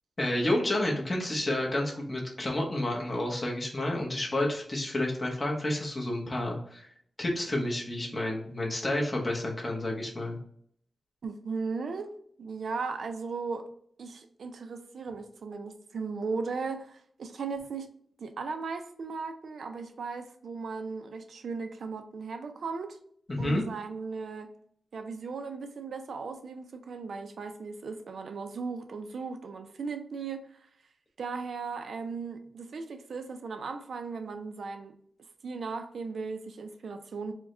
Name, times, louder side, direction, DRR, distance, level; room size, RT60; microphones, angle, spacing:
voice 1, 0.2-6.9 7.2-10.4 23.3-23.6, left 1 dB, 25° left, -1 dB, 0.9 m, -30 dB
voice 2, 11.2-13.7 14.0-17.9 18.2-23.0 23.4-24.5 24.9-30.6 31.2-34.9 35.4-37.3, right 4 dB, 70° right, 7 dB, 0.4 m, -37 dB
4.7 x 2.2 x 3.7 m, 0.62 s
wide cardioid pair, 175°, 0 cm